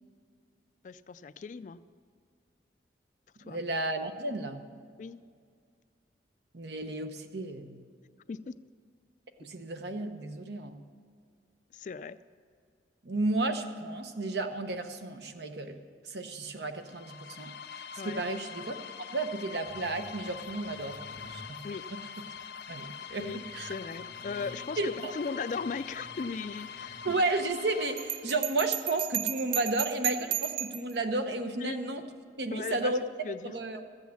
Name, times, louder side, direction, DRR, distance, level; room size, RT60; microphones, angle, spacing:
voice 1, 0.8-1.8 3.4-3.6 5.0-5.2 8.3-8.6 11.7-12.2 18.0-18.2 21.6-21.9 23.2-27.1 31.6-31.9 32.5-33.5, left 5 dB, 45° left, 15 dB, 0.3 m, -38 dB
voice 2, 3.4-4.7 6.5-7.8 9.4-10.8 13.0-15.8 16.0-17.5 18.0-18.8 19.1-21.0 21.3-21.6 21.9-22.0 22.7-23.7 24.8-25.1 27.0-32.0 32.4-33.0 33.4-33.8, right 2 dB, 75° right, 7 dB, 0.9 m, -32 dB
sound 1, 16.8-28.7, left 7 dB, 70° left, 0.7 m, -44 dB
sound 2, 19.5-28.5, equal, 30° right, 1.1 m, -54 dB
Bell, 28.0-30.9, right 11 dB, 55° right, 0.4 m, -33 dB
14.0 x 8.2 x 7.1 m, 2.1 s
head